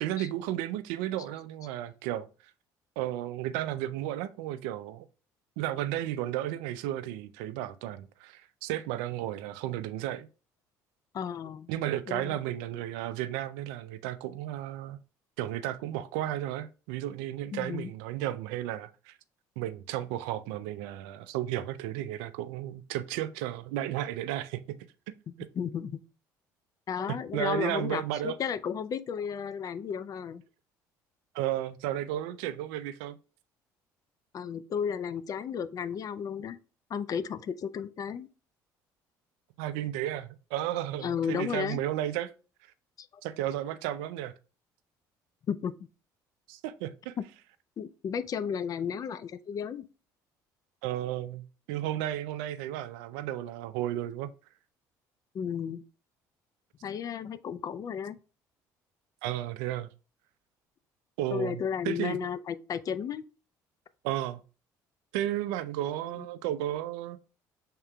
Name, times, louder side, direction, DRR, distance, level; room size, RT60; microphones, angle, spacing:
voice 1, 0.0-2.3 3.0-5.1 5.6-10.3 11.7-15.0 15.4-19.2 19.6-24.6 27.3-28.4 31.3-33.2 39.6-42.3 43.2-44.3 46.5-47.1 50.8-54.3 59.2-59.9 61.2-62.2 64.0-64.4 65.1-67.2, right 13 dB, 85° right, 0.4 m, -33 dB
voice 2, 11.1-11.7 12.1-12.3 17.5-17.9 25.5-26.0 26.9-30.4 34.3-36.6 36.9-38.3 41.0-41.8 43.0-43.1 45.5-45.7 47.8-49.9 55.3-55.8 56.8-58.2 61.3-63.3, left 7 dB, 45° left, 0.4 m, -33 dB
5.6 x 3.7 x 2.2 m
supercardioid pair, 80°, 8 cm